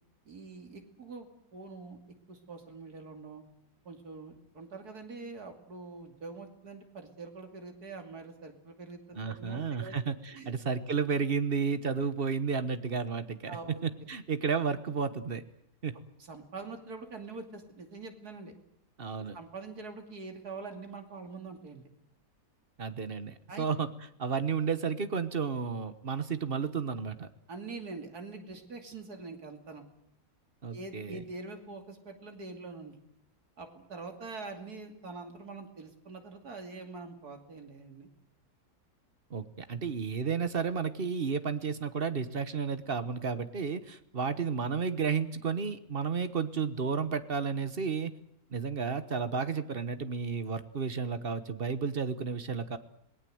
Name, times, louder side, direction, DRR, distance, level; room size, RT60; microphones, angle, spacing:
voice 1, 0.2-2.0 2.3-3.4 3.8-10.0 10.3-10.5 13.5-14.1 16.2-18.5 19.2-21.8 23.5-23.6 27.5-29.8 30.7-33.0 33.6-38.1, right 3 dB, 85° right, 5 dB, 3.2 m, -44 dB
voice 2, 9.1-13.6 13.8-15.4 15.8-15.9 19.0-19.4 22.8-23.9 24.2-27.3 30.6-31.2 39.3-48.1 48.5-52.8, right 5 dB, 40° right, 11 dB, 1.3 m, -32 dB
27.0 x 19.0 x 7.9 m, 0.74 s
omnidirectional pair, 1.6 m